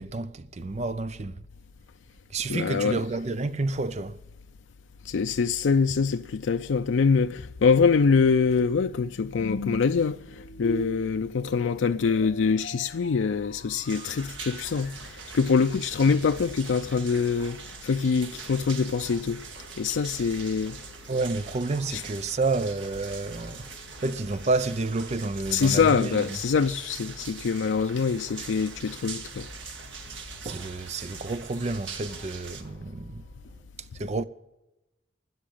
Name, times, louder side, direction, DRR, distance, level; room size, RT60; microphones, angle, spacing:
voice 1, 0.0-1.4 2.3-4.2 20.2-20.3 21.1-23.7 24.0-26.4 30.4-33.2 33.9-34.2, right 3 dB, 35° right, 0.5 m, -30 dB
voice 2, 2.5-3.0 5.0-19.4 19.8-20.8 21.9-22.0 25.5-29.5, left 5 dB, 85° left, 0.4 m, -24 dB
sound 1, 7.4-16.5, left 1 dB, 60° left, 1.0 m, -41 dB
sound 2, 13.9-32.6, right 6 dB, 85° right, 1.7 m, -43 dB
sound 3, 14.1-33.6, equal, 60° right, 3.0 m, -50 dB
12.5 x 9.5 x 8.6 m
head